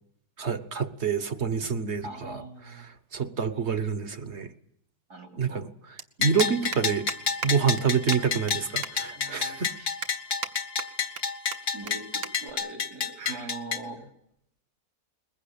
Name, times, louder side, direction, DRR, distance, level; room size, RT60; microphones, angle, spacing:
voice 1, 0.4-2.4 3.1-4.5 5.4-5.7 6.2-7.1 7.4-9.7 13.2-13.4, right 6 dB, 45° right, 1.3 m, -27 dB
voice 2, 2.0-2.9 5.1-5.7 8.3-8.5 9.2-9.9 11.7-14.1, right 2 dB, 85° right, 4.0 m, -42 dB
sound 1, 3.7-3.8 5.2-5.3 5.5-5.7 6.0-6.1 6.4-6.8 7.1-7.2 7.4-7.5 7.8-7.9 8.1-8.6 8.8-8.9 9.4-9.5 10.0-10.5 10.8-11.2 11.5-11.6 11.9-12.0 12.2-12.3 12.6-12.9 13.7-13.9, right 6 dB, 65° right, 1.6 m, -35 dB
sound 2, 6.2-12.5, left 3 dB, 70° left, 2.9 m, -48 dB
Bell, 6.2-13.8, left 6 dB, 45° left, 1.6 m, -30 dB
21.5 x 21.0 x 8.6 m
omnidirectional pair, 1.7 m